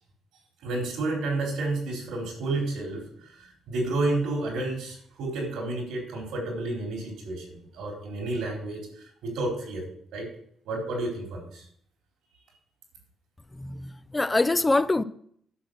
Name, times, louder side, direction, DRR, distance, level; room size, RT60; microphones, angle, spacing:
voice 1, 0.6-8.9 9.2-9.8 10.1-10.3 10.7-11.7, right 2 dB, 85° right, 4.1 m, -30 dB
voice 2, 13.6-15.0, left 2 dB, 20° left, 0.5 m, -24 dB
10.0 x 6.2 x 6.4 m
cardioid pair, 90°, 0 cm